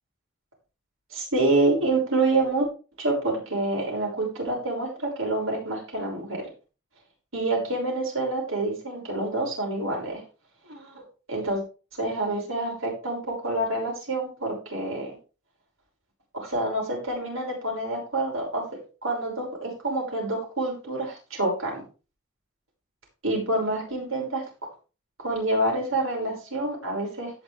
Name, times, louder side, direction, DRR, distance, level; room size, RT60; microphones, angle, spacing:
voice 1, 1.1-2.7 3.0-6.4 7.3-10.2 10.7-11.0 11.3-11.6 12.0-15.2 16.3-18.6 19.0-21.8 23.2-24.4 25.2-27.3, right 2 dB, 90° right, -1 dB, 5.9 m, -27 dB
17.0 x 5.9 x 3.5 m, 0.33 s
head